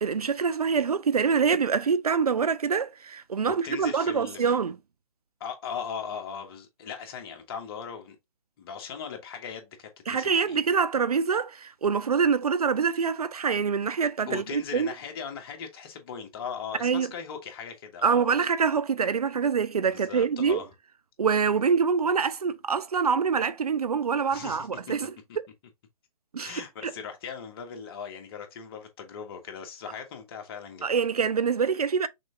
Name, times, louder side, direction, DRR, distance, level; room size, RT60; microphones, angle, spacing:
voice 1, 0.0-4.8 10.1-14.9 16.8-17.1 18.0-20.6 21.2-25.4 26.3-26.9 30.8-32.1, right 6 dB, 85° right, 0.6 m, -25 dB
voice 2, 3.5-4.6 5.4-8.2 8.6-10.6 14.3-18.5 19.9-20.7 24.3-24.9 26.4-30.9, left 7 dB, 40° left, 1.5 m, -39 dB
6.0 x 3.3 x 2.6 m
hypercardioid pair, 140°, 19 cm